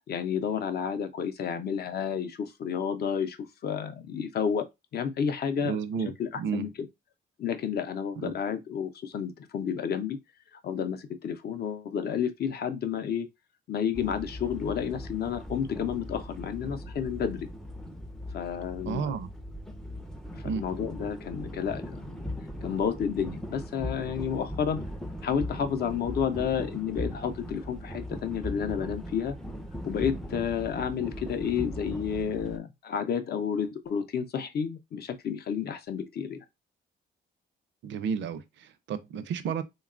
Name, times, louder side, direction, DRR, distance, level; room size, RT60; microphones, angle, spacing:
voice 1, 0.1-3.4 3.6-4.6 4.9-5.8 6.2-6.9 7.4-10.2 10.6-13.3 13.7-17.5 18.3-19.2 20.4-22.3 22.6-24.8 25.2-29.4 29.8-36.4, left 7 dB, 55° left, 0.5 m, -31 dB
voice 2, 5.6-6.7 8.2-8.3 18.9-19.3 20.4-20.6 37.8-39.6, right 6 dB, 70° right, 0.4 m, -32 dB
sound 1, 13.9-32.6, left 1 dB, ahead, 0.3 m, -39 dB
2.9 x 2.2 x 2.4 m
cardioid pair, 90°, 20 cm